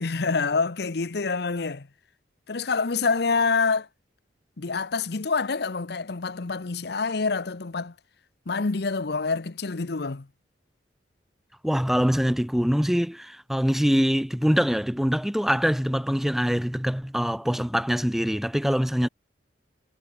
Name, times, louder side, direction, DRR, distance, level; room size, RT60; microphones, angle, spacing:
voice 1, 0.0-1.9 2.5-3.9 4.6-7.9 8.5-10.3, left 4 dB, 65° left, 0.8 m, -26 dB
voice 2, 11.6-19.1, equal, ahead, 0.5 m, -24 dB
head